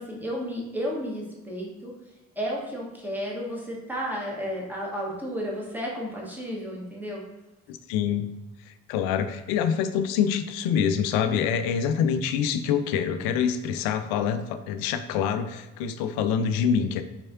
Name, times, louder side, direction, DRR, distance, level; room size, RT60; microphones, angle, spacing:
voice 1, 0.0-1.9 2.3-7.2, equal, 5° right, -3 dB, 1.5 m, -32 dB
voice 2, 7.7-8.3 8.6-17.0, left 7 dB, 60° left, 10 dB, 0.5 m, -26 dB
4.6 x 3.5 x 2.8 m, 1.1 s
figure-of-eight pair, 40°, 42 cm